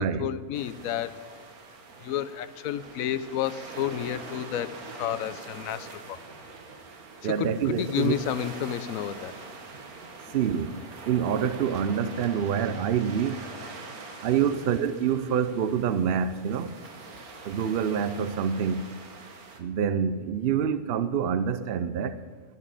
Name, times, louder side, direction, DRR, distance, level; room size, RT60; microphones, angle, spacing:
voice 1, 0.0-1.3 2.0-6.2 7.2-9.3 10.3-10.4 14.4-14.7, left 10 dB, 75° left, 1.1 m, -31 dB
sound 1, 0.5-19.6, right 3 dB, 80° right, 1.9 m, -44 dB
voice 2, 7.2-8.1 10.3-10.8 11.1-13.5 14.2-16.7 17.4-18.9 19.6-22.2, right 8 dB, 65° right, 0.6 m, -26 dB
13.5 x 7.2 x 9.8 m
omnidirectional pair, 1.5 m